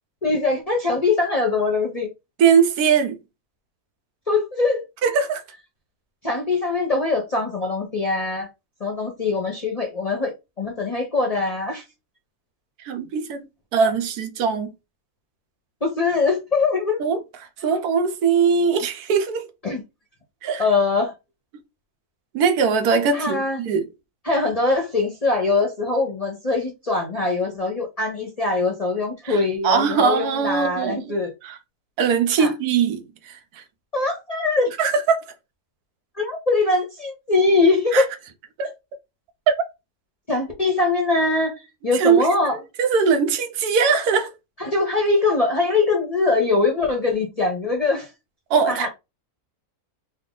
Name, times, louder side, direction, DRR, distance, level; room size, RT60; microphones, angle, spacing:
voice 1, 0.2-2.1 4.3-4.8 6.2-8.5 8.8-11.8 15.8-17.0 17.7-17.8 19.6-19.8 20.6-21.1 23.1-23.6 24.2-31.3 32.4-32.5 33.9-34.7 36.2-38.1 40.3-41.5 41.8-42.6 44.6-48.1 48.7-48.9, left 3 dB, 35° left, 0.6 m, -22 dB
voice 2, 2.4-3.2 5.0-5.4 12.8-13.5 13.7-14.7 17.0-17.2 17.6-19.5 20.4-20.6 22.3-23.9 29.2-31.0 31.4-31.6 32.0-33.4 34.8-35.2 37.9-38.0 38.6-38.7 41.9-42.3 42.8-44.3 48.5-48.9, right 6 dB, 85° right, 1.2 m, -20 dB
3.3 x 2.3 x 3.7 m
omnidirectional pair, 1.6 m